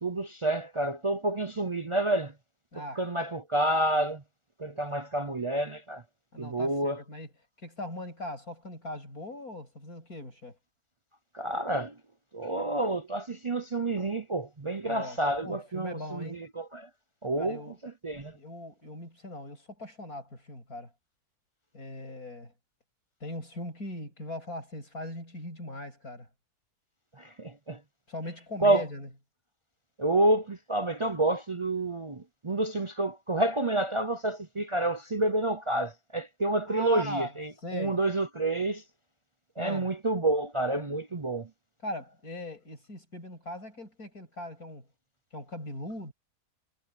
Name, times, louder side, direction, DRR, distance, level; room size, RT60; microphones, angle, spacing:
voice 1, 0.0-2.3 3.0-4.2 4.6-6.0 6.4-7.0 11.3-11.9 12.3-16.9 17.2-18.4 27.2-27.8 28.6-28.8 30.0-38.8 39.6-41.5, right 2 dB, 40° right, 0.4 m, -29 dB
voice 2, 2.7-3.0 6.3-7.3 7.6-10.6 14.8-16.5 17.4-17.8 18.3-20.9 21.7-22.5 23.2-26.3 28.1-29.1 36.7-38.0 39.6-39.9 41.8-44.9 45.3-46.1, left 1 dB, 75° left, 8.5 m, -40 dB
omnidirectional pair, 1.6 m